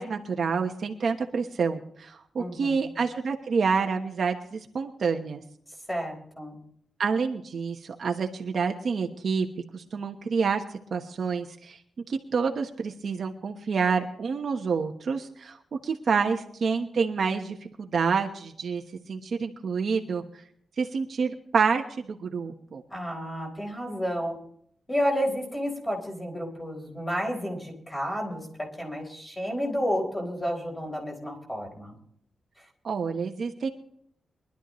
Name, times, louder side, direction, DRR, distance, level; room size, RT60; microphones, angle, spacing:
voice 1, 0.0-5.4 7.0-9.5 9.7-11.8 12.1-15.6 15.8-18.8 19.1-20.2 20.8-22.8 32.8-33.7, right 5 dB, 50° right, 3 dB, 1.1 m, -28 dB
voice 2, 2.4-2.9 5.9-6.6 22.9-24.4 24.9-32.0 32.6-32.7, equal, 10° left, 0 dB, 3.9 m, -31 dB
23.0 x 12.0 x 3.1 m, 0.65 s
wide cardioid pair, 175°, 0 cm